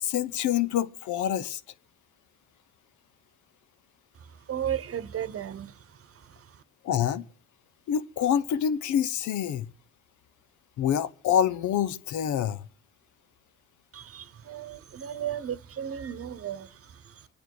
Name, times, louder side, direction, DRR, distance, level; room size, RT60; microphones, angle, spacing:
voice 1, 0.0-1.6 6.8-7.3 7.9-9.7 10.8-12.7, left 9 dB, 75° left, 0.8 m, -26 dB
voice 2, 4.1-6.6 13.9-17.3, right 9 dB, 50° right, 1.0 m, -36 dB
24.5 x 9.1 x 4.7 m
cardioid pair, 90°, 30 cm